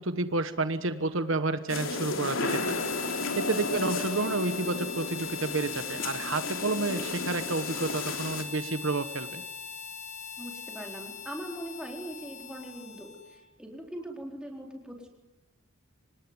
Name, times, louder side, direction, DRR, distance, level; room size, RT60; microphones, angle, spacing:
voice 1, 0.0-2.8 3.1-9.4, right 3 dB, 70° right, 10 dB, 1.2 m, -30 dB
sound 1, 1.7-8.4, left 3 dB, 75° left, 3.1 m, -33 dB
Harmonica, 2.4-13.5, left 6 dB, 35° left, 1.5 m, -40 dB
voice 2, 3.6-3.9 10.4-15.1, right 1 dB, 5° right, 1 dB, 4.0 m, -41 dB
25.5 x 19.5 x 9.6 m, 1.0 s
head